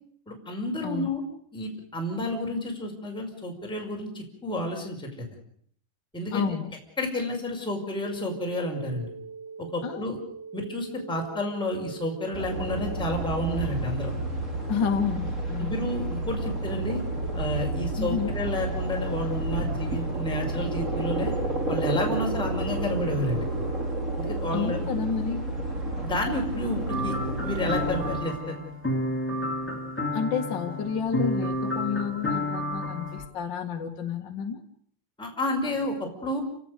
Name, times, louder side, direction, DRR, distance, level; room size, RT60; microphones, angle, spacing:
voice 1, 0.3-1.2 1.5-5.3 6.1-6.5 7.0-9.1 9.6-10.2 10.5-14.1 15.6-17.0 17.3-21.3 21.7-23.4 24.2-24.8 25.9-27.1 27.4-28.6 35.2-36.4, left 1 dB, ahead, 0 dB, 4.9 m, -30 dB
voice 2, 6.3-6.7 9.8-10.1 14.7-15.8 18.0-18.3 24.5-25.5 30.1-34.6, left 7 dB, 55° left, 4 dB, 1.2 m, -30 dB
sound 1, 8.0-13.0, right 5 dB, 90° right, 8.3 m, -42 dB
sound 2, 12.3-28.2, right 2 dB, 15° right, 4.2 m, -30 dB
sound 3, 26.9-33.3, left 1 dB, 20° left, 0.3 m, -30 dB
30.0 x 18.0 x 6.6 m, 0.62 s
omnidirectional pair, 5.3 m